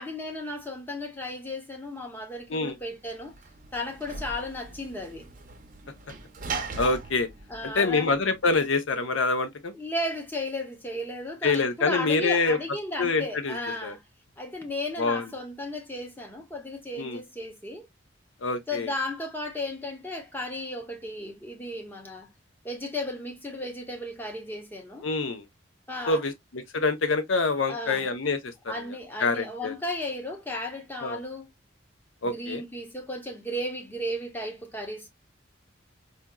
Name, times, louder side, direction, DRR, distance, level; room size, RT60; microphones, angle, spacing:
voice 1, 0.0-3.3 3.7-5.2 7.5-8.1 9.7-14.0 14.4-17.9 18.7-22.3 22.6-25.1 25.9-26.2 27.7-28.1 28.7-31.5 32.2-35.1, left 1 dB, 10° left, 0.8 m, -34 dB
Sliding door / Slam, 2.7-8.6, right 4 dB, 45° right, 0.6 m, -40 dB
voice 2, 6.8-7.3 7.6-9.7 11.4-12.6 13.0-13.6 13.8-13.9 15.0-15.3 17.0-17.2 18.4-18.9 25.0-25.5 26.1-28.9 29.2-29.7 31.0-31.2 32.2-32.6, left 3 dB, 85° left, 0.7 m, -26 dB
4.2 x 2.4 x 2.2 m
head